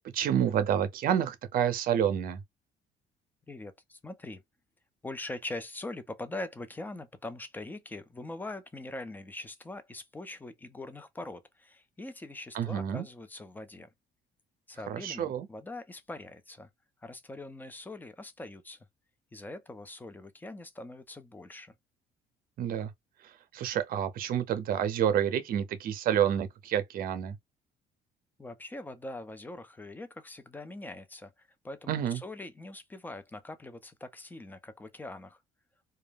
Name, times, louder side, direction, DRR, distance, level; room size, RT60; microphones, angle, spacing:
voice 1, 0.1-2.4 12.5-13.0 14.9-15.5 22.6-22.9 23.5-27.4 31.9-32.2, right 9 dB, 60° right, 0.6 m, -28 dB
voice 2, 3.5-4.4 5.0-13.9 14.7-16.7 17.0-18.8 19.3-21.7 28.4-35.4, left 2 dB, 10° left, 0.4 m, -42 dB
2.3 x 2.1 x 3.2 m
cardioid pair, 110°, 17 cm